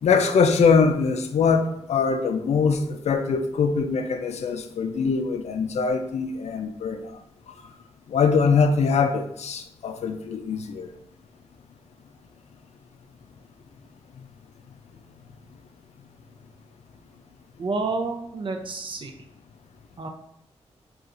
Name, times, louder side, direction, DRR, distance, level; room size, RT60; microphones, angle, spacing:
voice 1, 0.0-7.0 8.1-10.9, left 5 dB, 70° left, 7 dB, 0.4 m, -22 dB
voice 2, 17.6-19.1 20.0-20.1, right 3 dB, 45° right, 4 dB, 0.5 m, -29 dB
4.1 x 2.4 x 2.5 m, 0.79 s
cardioid pair, 65°, 12 cm